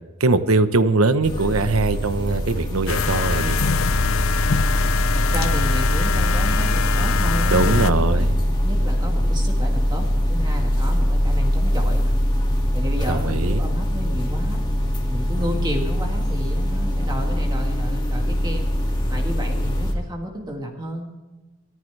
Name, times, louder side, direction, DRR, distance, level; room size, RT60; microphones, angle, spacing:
voice 1, 0.2-3.6 7.5-8.4 13.1-13.6, right 3 dB, 90° right, 11 dB, 1.0 m, -21 dB
sound 1, 1.2-19.9, equal, 20° left, 2.3 m, -22 dB
sound 2, 2.9-7.9, left 6 dB, 70° left, 0.6 m, -24 dB
voice 2, 5.1-12.2 12.7-14.6 15.1-18.6 19.1-21.1, equal, 20° right, 1 dB, 1.7 m, -32 dB
24.5 x 14.5 x 3.4 m, 1.2 s
head